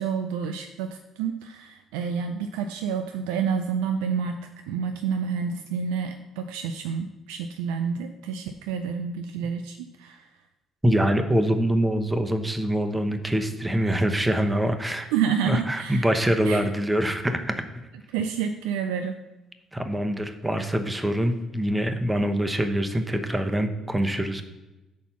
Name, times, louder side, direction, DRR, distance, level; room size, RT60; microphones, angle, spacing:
voice 1, 0.0-10.3 15.0-16.1 16.4-16.7 18.1-19.2, right 7 dB, 75° right, 7 dB, 0.3 m, -29 dB
voice 2, 10.8-15.1 15.4-17.6 19.7-24.4, right 1 dB, 15° right, 7 dB, 0.9 m, -24 dB
5.6 x 4.3 x 5.6 m, 1.0 s
hypercardioid pair, 50°, 0 cm